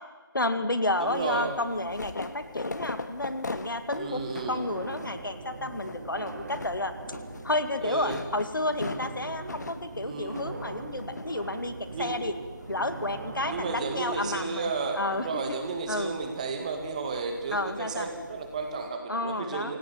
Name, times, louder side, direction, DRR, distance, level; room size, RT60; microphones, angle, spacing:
voice 1, 0.3-6.9 7.4-12.3 12.7-15.4 15.9-16.2 17.5-18.1 19.1-19.7, left 2 dB, 70° left, 10 dB, 2.1 m, -31 dB
sound 1, 1.0-18.9, left 2 dB, 50° left, 1.7 m, -43 dB
sound 2, 1.0-17.8, left 1 dB, 20° left, 6.0 m, -54 dB
voice 2, 1.0-1.5 3.9-4.6 7.8-8.2 10.0-10.5 11.9-12.2 13.4-19.8, right 4 dB, 20° right, 4 dB, 2.1 m, -33 dB
sound 3, 4.4-14.5, right 3 dB, 40° right, 1.8 m, -42 dB
27.5 x 17.5 x 7.6 m, 1.4 s
figure-of-eight pair, 160°, 12 cm